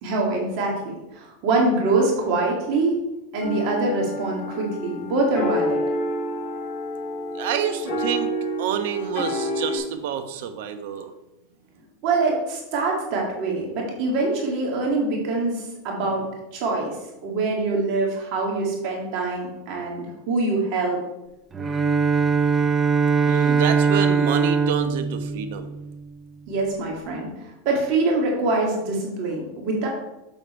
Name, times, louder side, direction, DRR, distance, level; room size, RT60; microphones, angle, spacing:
voice 1, 0.0-0.7 1.1-3.0 3.3-5.8 12.0-17.0 17.2-21.0 26.5-27.3 27.6-29.9, right 3 dB, 50° right, -1 dB, 2.1 m, -24 dB
sound 1, 3.4-9.7, equal, 40° left, 3.3 m, -28 dB
voice 2, 7.3-8.3 8.6-11.1 23.2-25.7, right 8 dB, 70° right, 9 dB, 1.0 m, -28 dB
Bowed string instrument, 21.5-26.1, right 5 dB, 15° right, 0.5 m, -21 dB
7.2 x 6.5 x 4.4 m, 0.95 s
supercardioid pair, 145°, 0 cm